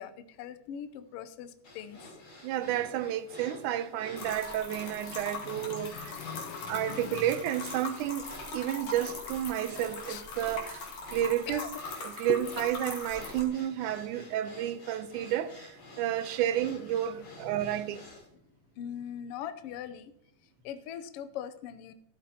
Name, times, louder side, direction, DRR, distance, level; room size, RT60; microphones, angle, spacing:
voice 1, 0.0-2.0 5.4-7.4 10.1-10.2 11.5-11.7 12.3-12.4 15.9-16.0 17.5-17.6 18.8-20.1 20.6-21.9, left 9 dB, 80° left, 1.4 m, -41 dB
sound 1, 1.6-18.3, left 1 dB, 45° left, 4.8 m, -49 dB
voice 2, 2.4-6.2 6.7-11.7 12.0-18.0, right 11 dB, 85° right, 2.2 m, -31 dB
sound 2, 4.2-13.4, left 4 dB, 65° left, 3.3 m, -41 dB
14.0 x 12.0 x 2.9 m
omnidirectional pair, 3.5 m